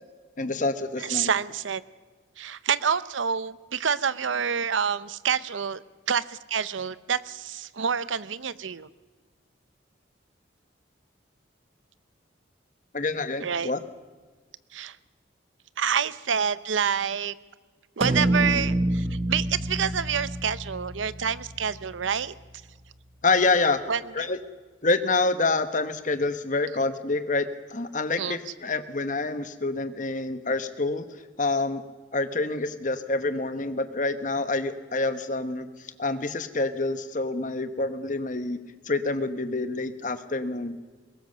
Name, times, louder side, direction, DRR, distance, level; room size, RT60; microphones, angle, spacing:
voice 1, 0.4-1.3 12.9-13.8 23.2-23.8 24.1-24.4 24.8-31.0 31.4-31.8 32.1-35.7 36.0-38.6 38.8-40.8, left 3 dB, 40° left, 11 dB, 1.1 m, -27 dB
voice 2, 1.0-1.8 2.4-8.9 13.4-13.7 14.7-15.0 15.8-17.3 18.0-22.3 23.9-24.3 28.2-28.4, right 7 dB, 90° right, 17 dB, 0.7 m, -28 dB
sound 1, 18.0-22.2, right 1 dB, 30° right, 0.8 m, -28 dB
21.0 x 18.5 x 6.7 m, 1.4 s
head